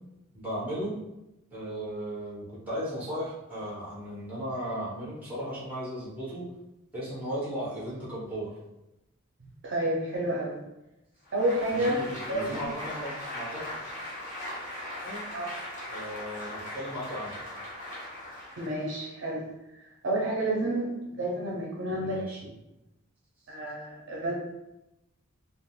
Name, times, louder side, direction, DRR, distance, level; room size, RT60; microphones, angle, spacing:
voice 1, 0.3-1.0 1.5-6.4 6.9-8.5 11.7-13.7 15.0-15.2 15.9-17.3 21.9-22.5, equal, 5° right, -9 dB, 0.9 m, -36 dB
voice 2, 9.6-10.6 11.3-12.0 12.3-12.6 15.3-15.5 18.6-19.4 20.0-22.2 23.5-24.3, right 1 dB, 55° right, -4 dB, 0.5 m, -29 dB
Applause, 11.3-19.0, left 1 dB, 35° left, 0.8 m, -39 dB
3.6 x 2.1 x 2.3 m, 0.94 s
head